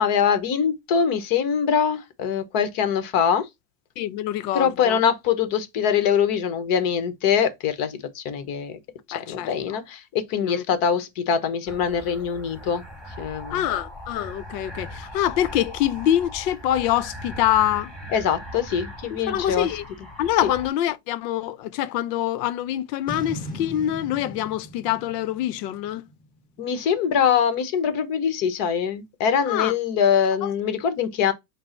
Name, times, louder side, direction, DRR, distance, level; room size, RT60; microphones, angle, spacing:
voice 1, 0.0-3.5 4.5-8.8 9.3-12.8 13.2-13.6 18.1-19.7 26.6-31.3, left 7 dB, 45° left, 0.9 m, -23 dB
voice 2, 4.0-5.0 9.1-9.8 10.4-10.6 13.5-17.9 19.1-19.8 20.2-26.0 29.5-29.7 30.4-30.5, left 12 dB, 75° left, 0.7 m, -25 dB
sound 1, 11.7-20.7, equal, ahead, 1.0 m, -39 dB
Boom, 23.1-26.4, left 1 dB, 15° left, 1.6 m, -38 dB
5.2 x 2.0 x 4.3 m
supercardioid pair, 145°, 49 cm